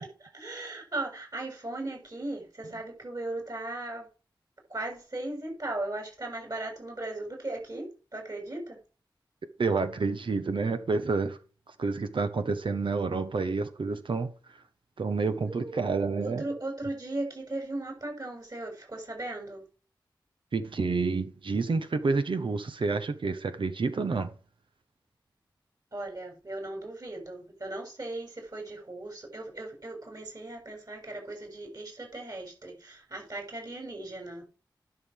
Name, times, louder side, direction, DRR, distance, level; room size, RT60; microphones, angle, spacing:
voice 1, 0.0-4.1 4.7-8.8 15.4-15.8 16.2-19.6 25.9-34.4, right 2 dB, 50° right, 6.7 m, -37 dB
voice 2, 9.6-11.4 11.8-14.3 15.0-16.5 20.5-24.3, right 4 dB, 85° right, 1.3 m, -29 dB
11.0 x 6.3 x 6.6 m
cardioid pair, 45°, 8 cm